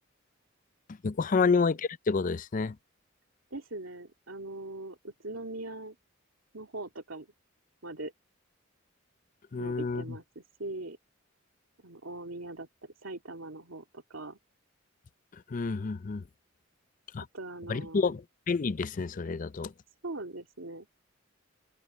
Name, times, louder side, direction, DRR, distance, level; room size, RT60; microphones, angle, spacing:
voice 1, 1.0-2.7 9.5-10.0 15.5-16.2 17.1-17.2 17.7-19.7, left 4 dB, 40° left, 0.4 m, -29 dB
voice 2, 3.5-6.0 6.5-7.3 7.8-8.1 9.6-11.0 11.8-12.7 13.0-14.4 17.3-18.1 20.0-20.9, right 2 dB, 90° right, 2.3 m, -41 dB
open air
head